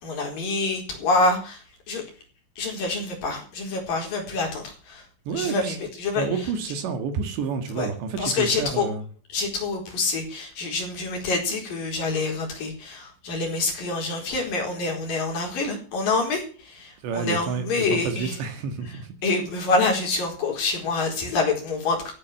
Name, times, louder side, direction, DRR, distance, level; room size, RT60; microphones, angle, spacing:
voice 1, 0.0-2.0 2.6-5.1 5.3-6.3 7.8-7.9 8.2-8.9 9.3-18.4 19.2-22.1, left 3 dB, 50° left, 1 dB, 5.9 m, -26 dB
voice 2, 5.3-5.8 6.2-9.0 17.0-19.1, right 5 dB, 70° right, 8 dB, 4.0 m, -29 dB
15.0 x 10.5 x 7.6 m, 0.40 s
omnidirectional pair, 5.4 m